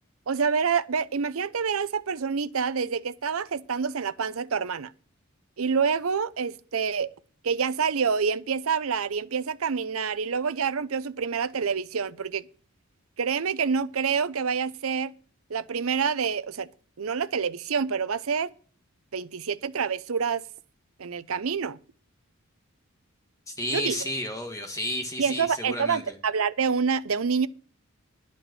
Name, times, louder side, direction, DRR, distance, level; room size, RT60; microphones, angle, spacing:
voice 1, 0.3-4.9 5.6-7.1 7.4-12.5 13.2-15.1 15.5-16.7 17.0-18.5 19.1-20.4 21.0-21.8 23.7-24.1 25.2-27.5, right 6 dB, 85° right, 0.6 m, -27 dB
voice 2, 23.6-26.1, left 1 dB, 15° left, 1.5 m, -32 dB
11.0 x 5.2 x 7.6 m
head